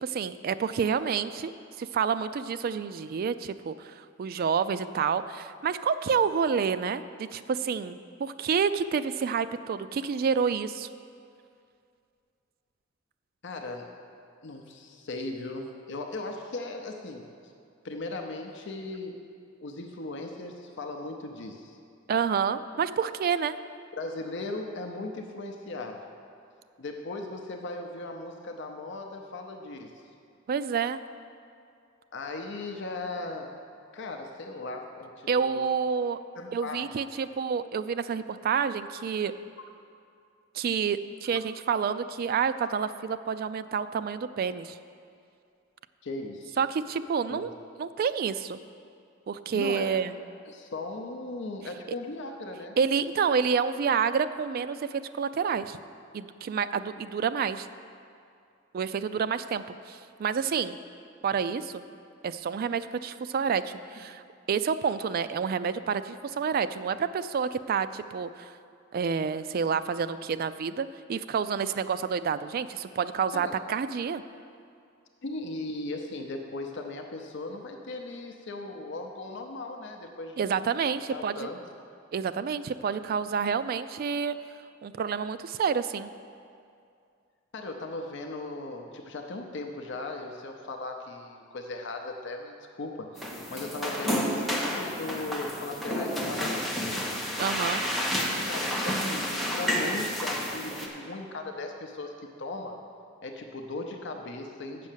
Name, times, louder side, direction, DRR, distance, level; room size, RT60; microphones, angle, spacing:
voice 1, 0.0-1.5 1.8-10.9 22.1-23.5 30.5-31.0 35.3-36.2 36.5-39.3 40.5-44.8 46.6-47.5 47.8-48.6 49.3-50.2 52.8-55.8 56.1-57.7 58.7-60.8 61.2-61.8 62.2-64.2 64.5-68.5 68.9-74.2 80.4-81.5 82.1-84.4 84.8-86.1 97.4-97.8, right 6 dB, 50° right, 12 dB, 0.3 m, -29 dB
voice 2, 13.4-13.9 14.4-17.5 17.8-19.2 19.6-21.8 24.0-26.1 26.8-30.0 32.1-33.6 33.9-35.6 36.4-37.0 42.6-42.7 46.0-46.6 47.3-47.5 49.5-49.9 50.5-52.8 73.3-73.5 75.2-80.4 81.1-81.6 87.5-97.0 98.3-102.8 103.2-104.9, left 2 dB, 60° left, 3 dB, 0.6 m, -38 dB
sound 1, 93.2-100.9, equal, ahead, 1.0 m, -30 dB
7.6 x 6.2 x 7.3 m, 2.4 s
head